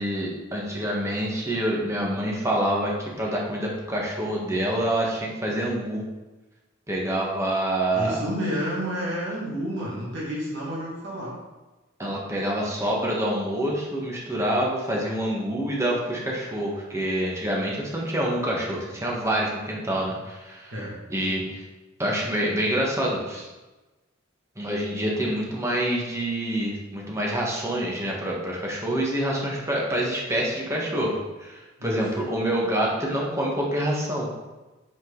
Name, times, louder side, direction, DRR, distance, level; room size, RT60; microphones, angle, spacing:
voice 1, 0.0-6.0 6.9-8.2 12.0-20.7 21.1-21.6 22.0-23.5 24.6-31.1 31.4-34.3, right 1 dB, 15° right, -3 dB, 1.8 m, -26 dB
voice 2, 7.9-11.4 20.7-20.9 31.8-32.0, equal, 65° right, -6 dB, 2.5 m, -30 dB
9.1 x 5.2 x 4.1 m, 1.1 s
head